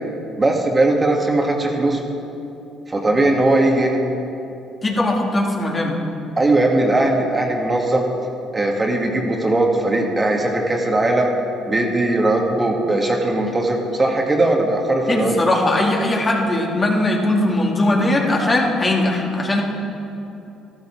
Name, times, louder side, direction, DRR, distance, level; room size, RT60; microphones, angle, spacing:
voice 1, 0.4-2.0 2.9-4.0 6.4-8.1 8.5-11.3 11.7-15.3, right 2 dB, 25° right, 1 dB, 1.8 m, -19 dB
voice 2, 4.8-6.0 15.1-19.6, left 1 dB, 30° left, -2 dB, 2.5 m, -19 dB
12.5 x 12.0 x 4.5 m, 2.8 s
hypercardioid pair, 60°, 0 cm